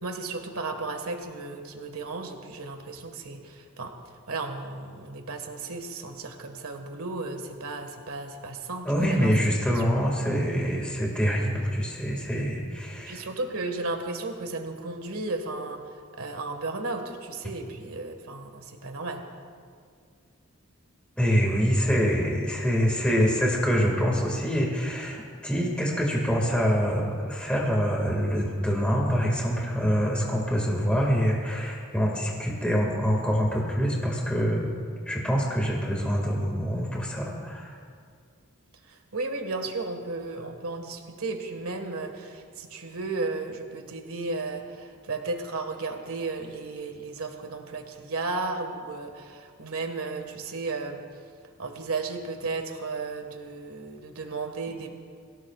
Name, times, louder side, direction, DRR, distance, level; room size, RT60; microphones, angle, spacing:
voice 1, 0.0-3.9 4.3-9.3 9.7-9.8 13.1-15.8 16.2-19.2 38.9-51.0 51.6-54.9, right 3 dB, 75° right, 5 dB, 1.6 m, -34 dB
voice 2, 8.9-13.3 21.2-34.7 35.1-37.8, equal, 5° left, -2 dB, 2.0 m, -25 dB
25.0 x 17.0 x 2.4 m, 2.1 s
head